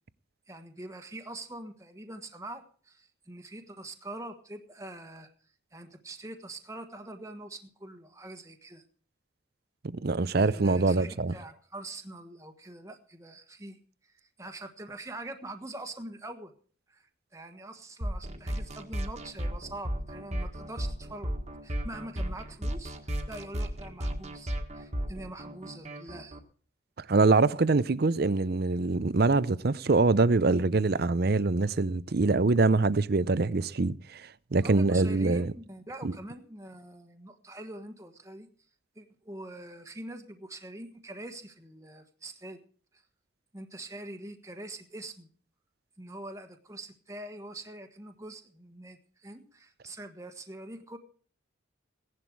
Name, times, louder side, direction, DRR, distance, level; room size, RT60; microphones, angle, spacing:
voice 1, 0.5-5.3 5.7-8.8 10.3-13.8 14.0-16.5 16.9-17.1 17.3-21.3 21.6-26.4 34.6-38.5 38.9-42.6 42.9-43.0 43.5-45.3 46.0-51.0, right 1 dB, 15° right, 1.3 m, -44 dB
voice 2, 10.0-11.3 27.1-35.5 36.0-36.1, right 3 dB, 50° right, 0.6 m, -24 dB
sound 1, 18.0-26.4, equal, 35° right, 1.7 m, -34 dB
17.0 x 11.0 x 4.7 m
head